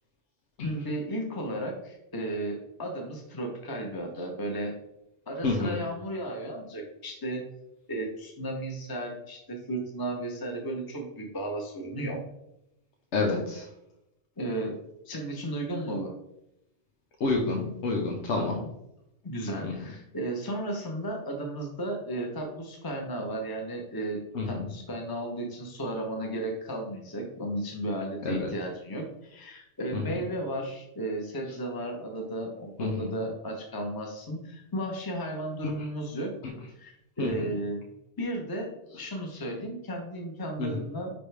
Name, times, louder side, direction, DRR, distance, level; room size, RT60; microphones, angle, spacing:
voice 1, 0.6-4.7 5.3-7.4 7.9-12.2 14.4-14.8 15.0-16.1 18.4-18.6 19.2-24.2 24.5-36.3 36.8-37.8 38.2-41.1, right 1 dB, 20° left, 1 dB, 1.0 m, -34 dB
voice 2, 5.4-5.8 13.1-13.7 17.2-18.6 19.6-19.8 24.3-24.7 28.2-28.5 29.9-30.2 32.8-33.2 36.4-36.5 37.2-37.4 40.6-40.8, left 3 dB, 90° left, 1 dB, 1.2 m, -29 dB
9.7 x 3.4 x 3.4 m, 0.84 s
omnidirectional pair, 1.1 m